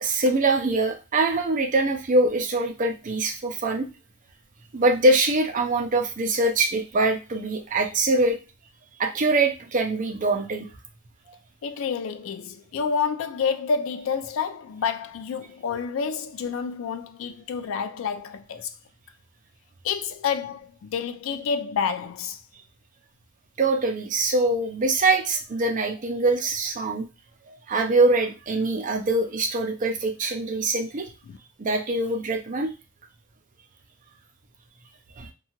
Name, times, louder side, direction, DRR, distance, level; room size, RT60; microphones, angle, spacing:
voice 1, 0.0-3.9 4.7-8.4 9.0-10.7 23.6-27.1 27.7-31.1 31.6-32.7 35.2-35.3, right 2 dB, 40° right, 0.5 m, -23 dB
voice 2, 11.6-18.7 19.8-22.4 31.3-31.4, left 6 dB, 75° left, 0.3 m, -29 dB
2.8 x 2.3 x 2.8 m
head